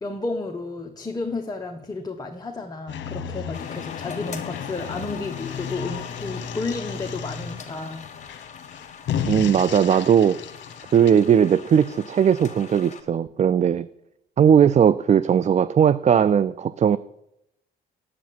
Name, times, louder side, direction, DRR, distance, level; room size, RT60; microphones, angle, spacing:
voice 1, 0.0-8.1, left 3 dB, 20° left, 2 dB, 1.3 m, -32 dB
sound 1, 2.9-12.0, left 8 dB, 75° left, 1.2 m, -34 dB
sound 2, 3.5-13.0, left 6 dB, 35° left, 1.9 m, -42 dB
voice 2, 9.3-10.4 10.9-13.9 14.4-17.0, right 8 dB, 35° right, 17 dB, 0.4 m, -18 dB
9.6 x 8.2 x 9.3 m, 0.82 s
cardioid pair, 90°, 20 cm